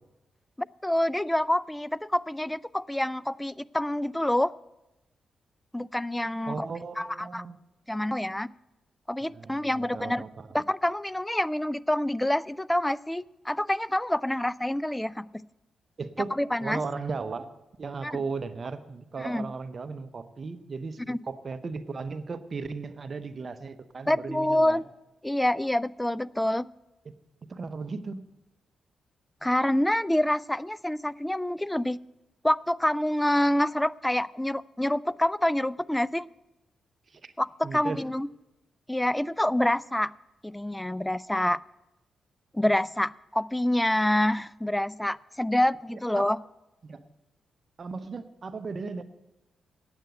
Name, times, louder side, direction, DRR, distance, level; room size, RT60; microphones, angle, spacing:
voice 1, 0.6-4.5 5.7-6.7 7.0-7.4 7.9-8.5 9.1-10.2 10.5-15.3 16.3-16.8 18.0-18.2 19.2-19.5 21.1-21.2 24.1-24.8 25.2-26.6 29.4-32.0 32.4-36.3 37.4-38.3 38.9-40.1 40.4-41.6 42.5-46.4, left 1 dB, 10° left, 21 dB, 0.3 m, -27 dB
voice 2, 6.5-7.6 9.2-10.5 16.0-17.5 17.8-24.8 27.1-27.2 27.5-28.3 37.1-37.3 37.6-38.0 45.9-46.3 46.8-47.0 47.8-49.0, right 4 dB, 50° right, 11 dB, 0.7 m, -36 dB
9.0 x 8.0 x 8.0 m, 0.98 s
supercardioid pair, 55°, 0 cm